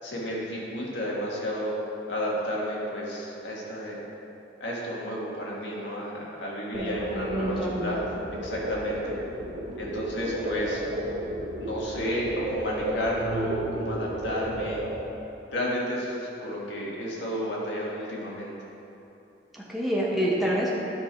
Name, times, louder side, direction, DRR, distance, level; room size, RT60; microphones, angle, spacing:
voice 1, 0.0-1.8 2.1-4.0 4.6-8.0 8.4-9.1 9.8-11.0 11.6-14.8 15.5-18.5, equal, 70° left, -4 dB, 1.6 m, -32 dB
voice 2, 6.7-7.9 19.5-20.7, right 1 dB, ahead, -6 dB, 1.1 m, -28 dB
sound 1, 6.7-15.0, right 1 dB, 70° right, 0.8 m, -33 dB
9.7 x 5.3 x 4.5 m, 2.9 s
head